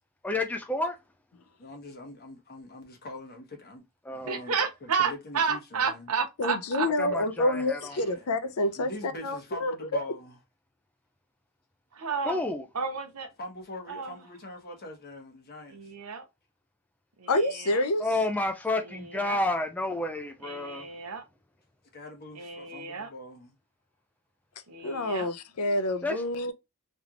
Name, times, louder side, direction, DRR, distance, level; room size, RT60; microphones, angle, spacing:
voice 1, 0.2-1.0 4.0-4.4 7.0-8.0 12.2-12.7 18.0-20.9 26.0-26.2, left 2 dB, 5° left, 0.4 m, -30 dB
voice 2, 1.6-3.8 4.1-4.5 4.8-6.1 8.1-8.3 8.8-10.3 13.4-15.9 21.9-23.5, left 1 dB, 45° left, 1.2 m, -43 dB
voice 3, 4.3-6.9 11.9-12.4 12.7-13.3 13.9-14.1 15.7-16.2 17.2-17.8 19.1-19.4 20.4-21.2 22.4-23.1 24.7-25.3, right 6 dB, 85° right, 0.8 m, -31 dB
voice 4, 6.4-10.0 17.3-18.0 24.8-26.5, left 1 dB, 75° left, 0.6 m, -28 dB
3.4 x 2.9 x 2.4 m
head